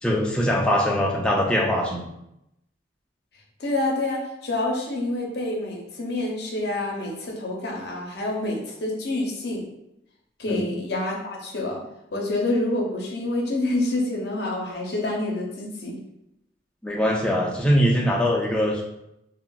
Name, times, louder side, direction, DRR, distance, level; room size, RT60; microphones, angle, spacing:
voice 1, 0.0-2.1 10.5-10.8 16.8-18.8, equal, 5° left, -2 dB, 0.3 m, -22 dB
voice 2, 3.6-9.7 10.4-11.8 12.1-16.0, left 2 dB, 55° left, -1 dB, 0.6 m, -27 dB
3.5 x 2.0 x 2.2 m, 0.84 s
head